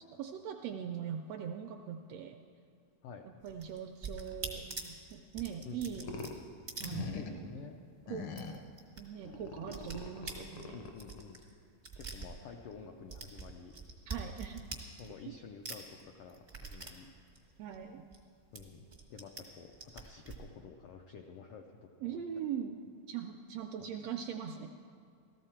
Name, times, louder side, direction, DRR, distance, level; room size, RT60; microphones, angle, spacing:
voice 1, 0.1-2.4 3.4-6.1 6.8-7.4 8.1-8.3 9.0-10.9 14.1-14.7 15.3-15.4 17.6-18.0 22.0-22.8 23.1-24.7, right 8 dB, 80° right, 5 dB, 1.5 m, -41 dB
sound 1, 3.4-7.6 7.9-8.0 8.3-9.0 9.3-12.8 13.1-15.4 15.6-18.2 18.5-19.4 19.7-20.4, right 4 dB, 65° right, 0.4 m, -45 dB
voice 2, 5.6-6.2 7.0-7.8 10.7-11.4 12.0-13.7 15.0-17.1 18.5-22.2, left 5 dB, 90° left, 3 dB, 1.3 m, -50 dB
sound 2, 6.0-6.4 6.8-7.5 8.1-8.7 9.2-11.3, left 4 dB, 70° left, 1.3 m, -43 dB
15.0 x 14.0 x 4.4 m, 2.3 s
omnidirectional pair, 3.4 m